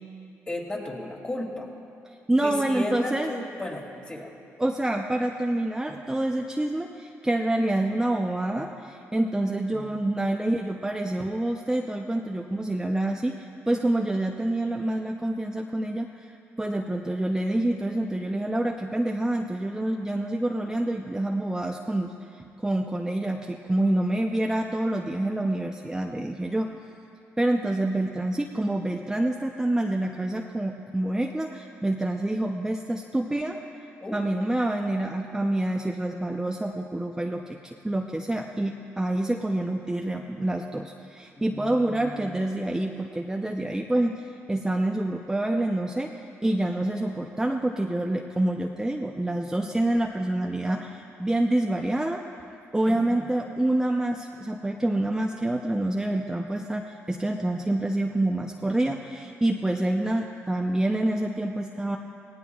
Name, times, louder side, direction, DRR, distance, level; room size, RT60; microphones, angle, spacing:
voice 1, 0.5-1.7 2.4-4.3 9.4-10.1 34.0-34.2 41.4-42.4 52.9-53.2, left 1 dB, 20° left, -1 dB, 2.7 m, -35 dB
voice 2, 2.3-3.3 4.6-26.7 27.4-33.6 34.1-46.1 46.4-52.2 52.7-62.0, right 1 dB, 10° right, 2 dB, 0.7 m, -27 dB
19.0 x 17.0 x 2.4 m, 2.6 s
cardioid pair, 75°, 5 cm